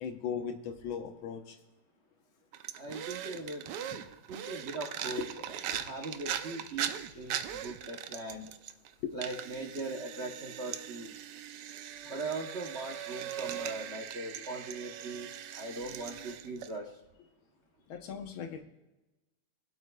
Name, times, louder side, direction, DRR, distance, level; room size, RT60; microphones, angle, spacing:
voice 1, 0.0-1.6 3.9-4.0 5.2-5.3 5.7-5.8 9.0-9.2 14.3-14.4 17.9-18.6, left 7 dB, 80° left, 6 dB, 1.8 m, -38 dB
sound 1, 2.5-8.9 9.2-16.8, right 10 dB, 70° right, 1.1 m, -40 dB
voice 2, 2.8-3.7 4.0-8.5 9.1-11.2 12.1-17.0, right 2 dB, 50° right, 1 dB, 0.9 m, -40 dB
23.0 x 8.3 x 2.3 m, 1.0 s
omnidirectional pair, 2.2 m